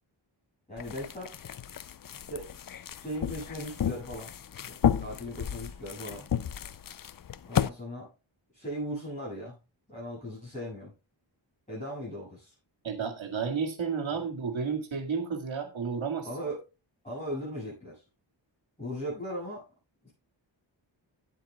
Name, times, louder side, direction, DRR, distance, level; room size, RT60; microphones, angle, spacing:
voice 1, 0.7-1.4 2.1-2.5 3.0-4.3 4.7-6.3 7.5-8.1 8.5-9.6 9.9-10.9 11.7-12.5 14.1-14.2 16.2-16.6 17.0-18.0 18.8-19.6 20.0-20.1, equal, 15° left, -8 dB, 7.4 m, -38 dB
sound 1, 0.8-7.7, left 9 dB, 45° left, 0.5 m, -32 dB
voice 2, 12.8-16.3, right 6 dB, 80° right, 4 dB, 2.1 m, -32 dB
17.5 x 7.6 x 2.3 m, 0.28 s
wide cardioid pair, 115°, 46 cm